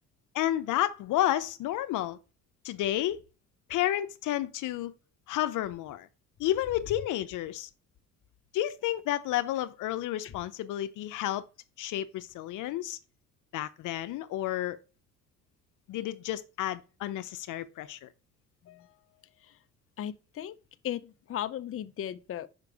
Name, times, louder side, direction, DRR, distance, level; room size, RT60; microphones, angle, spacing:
voice 1, 0.3-2.2 2.6-3.2 3.7-4.9 5.3-6.1 6.4-7.7 8.5-11.4 11.8-13.0 13.5-14.8 15.9-18.1, left 13 dB, 85° left, 0.7 m, -31 dB
voice 2, 20.0-20.6 20.8-22.5, left 11 dB, 45° left, 0.6 m, -37 dB
5.2 x 4.8 x 4.8 m
cardioid pair, 90°, 30 cm